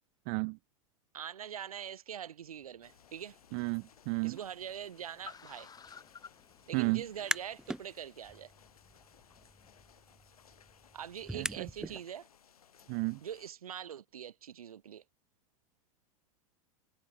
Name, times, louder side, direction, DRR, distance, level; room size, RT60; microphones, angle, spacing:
voice 1, 0.3-0.6 3.5-4.4 6.7-7.0 11.3-11.7 12.9-13.2, right 40 dB or more, 45° right, 0.5 m, -32 dB
voice 2, 1.1-3.4 4.2-5.7 6.7-8.5 10.9-12.3 13.2-15.0, right 9 dB, 75° right, 1.1 m, -43 dB
Car, 2.4-9.8, left 6 dB, 20° left, 6.6 m, -57 dB
sound 1, 2.8-13.5, left 8 dB, 80° left, 5.6 m, -63 dB
sound 2, 7.0-7.8 8.2-12.0, right 1 dB, 5° right, 1.7 m, -41 dB
figure-of-eight pair, 95°, 19 cm